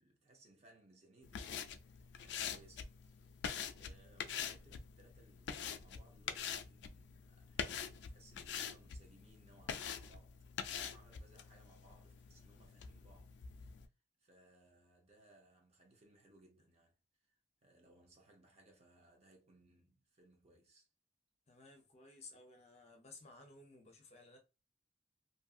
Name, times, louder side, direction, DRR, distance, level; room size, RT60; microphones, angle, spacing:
voice 1, 0.0-13.3 13.8-13.9 14.2-17.0 17.3-20.9, right 2 dB, 35° right, 0.7 m, -66 dB
sound 1, 1.2-13.9, left 7 dB, 65° left, 0.3 m, -45 dB
voice 2, 21.5-24.4, left 3 dB, 35° left, 0.6 m, -57 dB
2.6 x 2.6 x 2.4 m
head